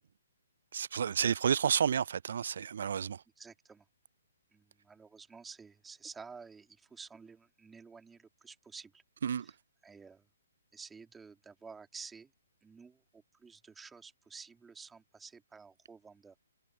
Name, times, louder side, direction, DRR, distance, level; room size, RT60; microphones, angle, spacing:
voice 1, 0.7-3.2 9.2-9.5, right 7 dB, 60° right, 0.5 m, -30 dB
voice 2, 3.4-3.8 4.5-9.0 9.4-9.5 9.8-10.3 10.7-12.3 12.6-16.4, right 5 dB, 10° right, 3.2 m, -51 dB
figure-of-eight pair, 130°, 0 cm